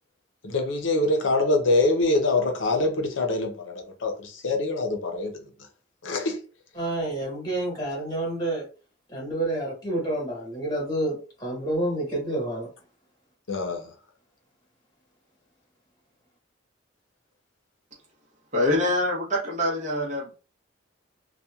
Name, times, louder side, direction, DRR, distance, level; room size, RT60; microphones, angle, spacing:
voice 1, 0.4-5.4 6.0-6.4 13.5-13.9, left 2 dB, 90° left, 0.6 m, -24 dB
voice 2, 6.7-8.6 9.1-12.7, right 1 dB, 20° left, 1.3 m, -29 dB
voice 3, 18.5-20.3, left 1 dB, 40° right, 0.8 m, -25 dB
2.8 x 2.3 x 2.3 m
head